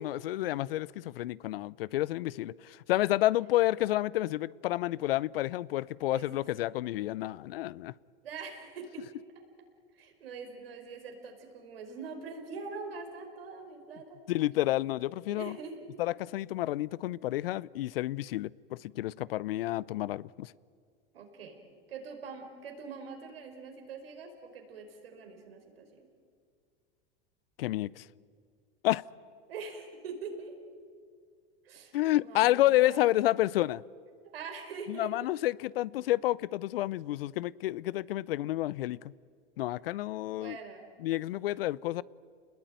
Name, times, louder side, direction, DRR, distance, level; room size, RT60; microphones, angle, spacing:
voice 1, 0.0-7.9 14.3-15.6 16.0-20.5 27.6-28.1 28.8-29.0 31.9-33.8 34.9-39.1 39.6-40.6 41.0-42.0, left 15 dB, 75° left, 0.7 m, -30 dB
voice 2, 8.2-9.0 9.9-14.2 15.3-15.7 21.1-21.6 21.9-26.1 29.5-30.6 31.6-31.9 32.2-33.1 34.2-35.1 40.3-40.8, right 5 dB, 80° right, 4.8 m, -43 dB
30.0 x 20.5 x 9.1 m
hypercardioid pair, 90°, 29 cm